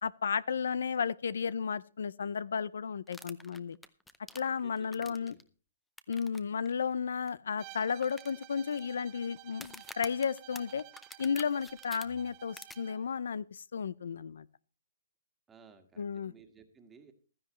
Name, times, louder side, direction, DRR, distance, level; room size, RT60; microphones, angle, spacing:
voice 1, 0.0-3.8 4.3-5.4 6.1-10.8 11.2-14.5 16.0-16.3, left 6 dB, 80° left, 0.5 m, -33 dB
sound 1, 3.1-5.4 6.0-6.4 6.7-6.8 7.3-7.4 8.0-8.8 9.5-12.0 12.6-12.8, left 2 dB, 5° left, 0.6 m, -48 dB
voice 2, 4.6-5.4 15.5-17.1, right 5 dB, 10° right, 1.7 m, -57 dB
Bowed string instrument, 7.6-13.1, right 22 dB, 30° right, 0.6 m, -53 dB
15.5 x 12.5 x 3.1 m
hypercardioid pair, 155°, 0 cm